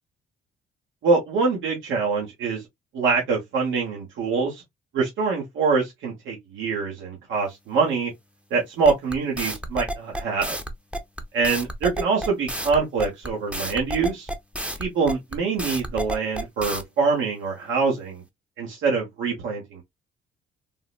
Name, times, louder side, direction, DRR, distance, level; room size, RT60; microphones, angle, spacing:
voice 1, 1.0-2.6 2.9-4.6 4.9-8.1 8.5-10.6 11.3-14.3 14.8-18.2 18.6-19.8, right 4 dB, 80° right, 1.1 m, -24 dB
sound 1, 8.8-16.8, right 1 dB, 5° right, 0.6 m, -30 dB
3.7 x 2.0 x 2.3 m
cardioid pair, 90°, 20 cm